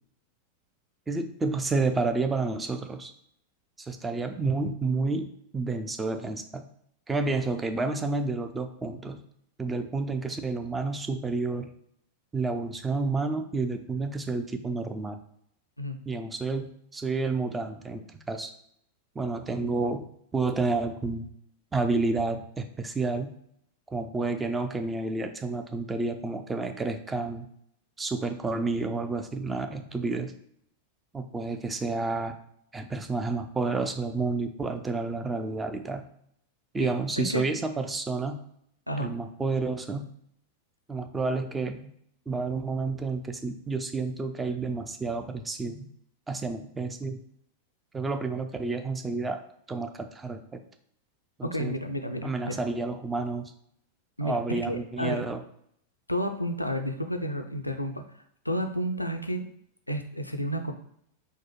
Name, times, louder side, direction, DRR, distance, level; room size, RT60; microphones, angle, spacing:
voice 1, 1.1-3.1 3.8-6.7 7.1-9.2 9.6-11.7 12.3-15.2 16.1-18.5 19.2-20.0 20.3-21.3 21.7-23.3 23.9-27.5 28.0-30.3 31.1-32.4 32.7-36.0 36.7-38.4 39.0-40.1 40.9-41.9 42.3-45.9 46.3-47.2 47.9-49.4 49.7-50.6 51.4-51.7 52.2-53.5 54.2-55.4, right 3 dB, 15° right, 7 dB, 0.3 m, -30 dB
voice 2, 36.8-37.4 38.9-39.1 51.4-52.6 54.2-55.2 56.1-58.0 58.5-59.4 59.9-60.7, equal, 85° left, 6 dB, 0.3 m, -31 dB
4.1 x 2.1 x 3.0 m, 0.70 s
figure-of-eight pair, 90°, 0 cm